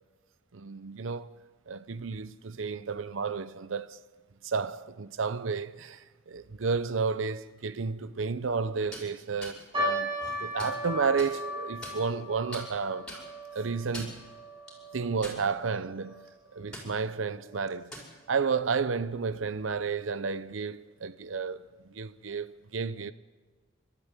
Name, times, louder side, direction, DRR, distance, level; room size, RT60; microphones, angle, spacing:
voice 1, 0.5-1.4 1.7-4.0 4.4-10.1 10.4-13.2 13.5-14.2 14.9-16.3 16.5-17.9 18.3-23.1, right 5 dB, 70° right, 0.7 m, -32 dB
sound 1, 8.8-9.1 9.4-9.6 10.1-10.8 11.2-11.3 11.8-12.2 12.5-12.6 13.1-13.2 13.8-14.2 14.7-14.8 15.2-15.7 16.1-16.3 16.7-16.9 17.7-18.1, left 1 dB, 5° left, 5.5 m, -42 dB
sound 2, 9.7-16.2 16.5-16.6 17.4-17.6 18.2-18.3 18.7-18.9, equal, 25° right, 7.4 m, -37 dB
28.5 x 13.0 x 8.2 m
head